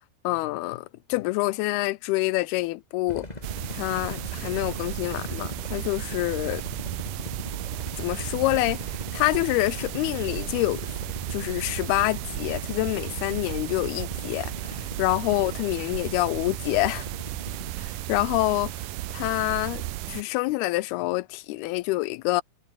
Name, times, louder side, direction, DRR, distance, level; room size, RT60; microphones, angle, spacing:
voice 1, 0.2-3.3 3.7-6.6 8.0-8.8 9.1-10.9 11.3-17.1 17.8-18.7 19.1-22.4, left 20 dB, 85° left, 2.5 m, -27 dB
sound 1, 3.1-17.7, left 1 dB, 10° left, 3.5 m, -40 dB
sound 2, 3.4-20.2, right 16 dB, 75° right, 2.1 m, -34 dB
omnidirectional pair, 4.5 m